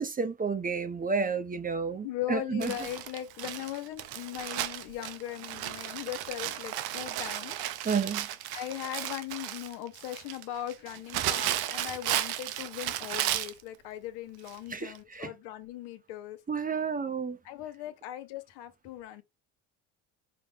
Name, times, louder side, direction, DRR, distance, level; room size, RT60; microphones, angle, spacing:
voice 1, 0.0-2.7 7.8-8.3 14.7-15.3 16.5-17.4, right 5 dB, 20° right, 0.5 m, -31 dB
voice 2, 2.0-7.6 8.5-16.4 17.4-19.2, left 13 dB, 80° left, 0.9 m, -39 dB
Crumpling crinkling, 2.6-13.6 14.5-14.6 14.9-15.0, right 12 dB, 70° right, 0.7 m, -34 dB
4.9 x 2.0 x 3.4 m
supercardioid pair, 80°, 40 cm